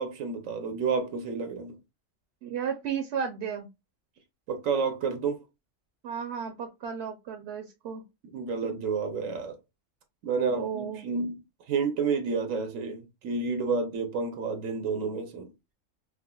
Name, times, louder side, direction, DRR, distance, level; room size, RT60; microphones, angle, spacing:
voice 1, 0.0-1.8 4.5-5.4 8.3-9.6 10.2-11.4 11.7-15.5, right 5 dB, 90° right, 1.1 m, -30 dB
voice 2, 2.4-3.7 6.0-8.0 10.5-11.1, right 7 dB, 65° right, 0.8 m, -34 dB
4.8 x 2.1 x 2.3 m
omnidirectional pair, 1.3 m